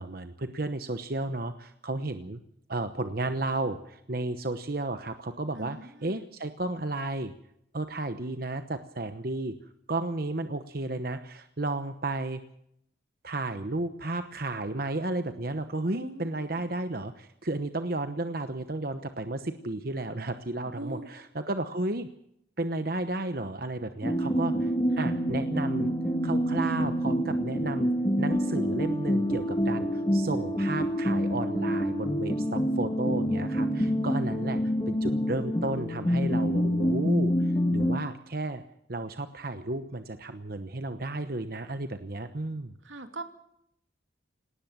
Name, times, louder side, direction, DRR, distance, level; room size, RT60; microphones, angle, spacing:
voice 1, 0.0-2.4 2.7-7.3 7.7-9.6 9.9-12.4 13.2-22.1 22.6-24.7 25.0-25.9 26.2-27.9 28.2-38.6 38.9-42.7, right 2 dB, 50° right, 9 dB, 1.0 m, -33 dB
voice 2, 5.5-6.2 15.9-16.5 20.7-21.1 25.0-25.1 34.0-34.2 42.8-43.2, right 1 dB, 85° right, 6 dB, 2.7 m, -41 dB
sound 1, 24.0-38.0, equal, 20° left, 1.6 m, -27 dB
19.0 x 18.5 x 7.5 m, 0.74 s
head